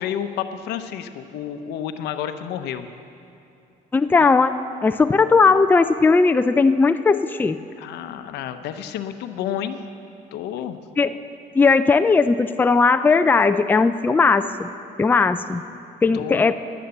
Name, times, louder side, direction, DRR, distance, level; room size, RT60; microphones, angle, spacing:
voice 1, 0.0-2.9 7.8-9.8 10.3-10.8 16.1-16.5, left 9 dB, 80° left, 9 dB, 0.8 m, -30 dB
voice 2, 3.9-4.5 4.8-7.6 11.0-11.1 11.6-14.7 15.0-15.6 16.0-16.6, left 4 dB, 10° left, 10 dB, 0.4 m, -17 dB
11.0 x 9.6 x 7.8 m, 2.7 s
cardioid pair, 110°, 17 cm